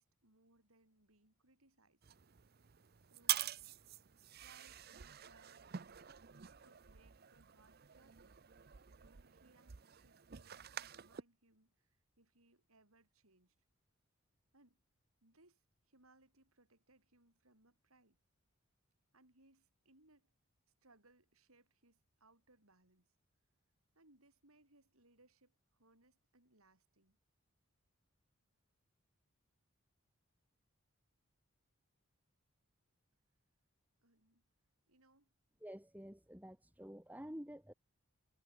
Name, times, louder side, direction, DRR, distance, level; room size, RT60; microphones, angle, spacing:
voice 1, 0.0-2.1 3.1-3.5 4.4-5.7 6.6-8.4 9.0-13.6 14.5-14.8 15.2-18.2 19.1-20.3 20.8-23.1 23.9-27.2 34.0-34.5 34.9-35.3, right 2 dB, 85° right, 7.4 m, -70 dB
sound 1, 2.0-11.2, right 12 dB, 45° right, 0.6 m, -46 dB
voice 2, 35.6-37.7, equal, 5° right, 1.7 m, -50 dB
head